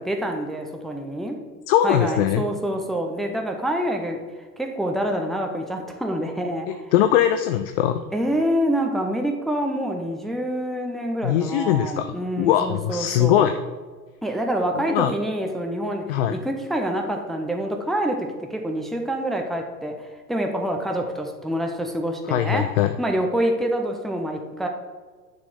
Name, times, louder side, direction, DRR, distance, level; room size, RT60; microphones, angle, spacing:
voice 1, 0.0-1.4 1.8-4.2 4.6-6.9 8.1-13.5 14.2-22.7 23.0-24.7, right 1 dB, ahead, 3 dB, 0.7 m, -26 dB
voice 2, 1.7-2.4 6.9-8.1 11.2-13.5 14.9-15.1 16.1-16.3 22.3-22.9, left 11 dB, 40° left, 9 dB, 0.4 m, -21 dB
9.5 x 6.3 x 3.7 m, 1.4 s
figure-of-eight pair, 95°, 49 cm